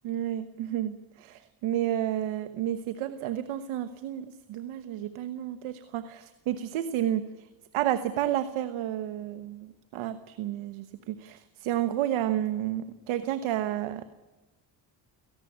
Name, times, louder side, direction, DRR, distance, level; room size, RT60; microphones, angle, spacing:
voice 1, 0.0-7.3 7.7-14.0, right 12 dB, 85° right, 11 dB, 1.2 m, -31 dB
18.0 x 15.5 x 9.9 m, 1.1 s
supercardioid pair, 70°, 48 cm